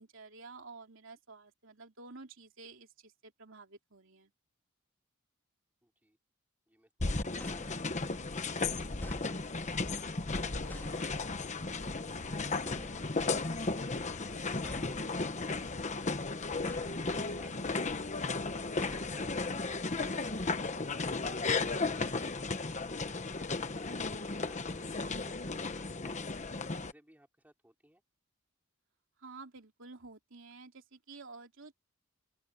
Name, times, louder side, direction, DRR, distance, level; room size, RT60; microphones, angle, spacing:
voice 1, 0.0-4.3 29.2-31.7, right 3 dB, 60° right, 3.3 m, -51 dB
voice 2, 5.8-6.2 6.7-7.5 7.8-8.5 12.3-13.1 13.4-15.5 18.8-20.5 20.9-28.0, right 1 dB, 10° right, 5.0 m, -62 dB
sound 1, 7.0-26.9, left 3 dB, 35° left, 1.1 m, -35 dB
sound 2, 7.4-8.3 9.0-9.8 10.7-11.6 12.6-13.5 14.6-15.7 16.6-17.4 18.8-19.7, equal, 10° left, 4.2 m, -50 dB
sound 3, 10.4-19.2, left 3 dB, 65° left, 1.2 m, -53 dB
open air
head